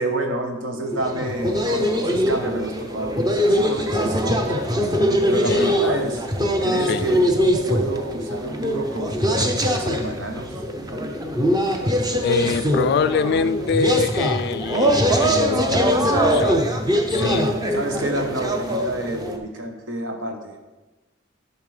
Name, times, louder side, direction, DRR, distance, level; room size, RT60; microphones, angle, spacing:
voice 1, 0.0-4.4 5.2-6.3 6.6-7.3 7.6-10.6 17.1-20.6, right 1 dB, 75° right, 4 dB, 1.1 m, -29 dB
sound 1, 0.9-19.4, equal, 20° right, 0.6 m, -22 dB
voice 2, 5.4-5.8 6.9-7.0 12.2-16.0 16.3-16.6 17.1-17.5, left 5 dB, 55° left, 14 dB, 0.3 m, -24 dB
11.0 x 5.6 x 3.3 m, 1.1 s
head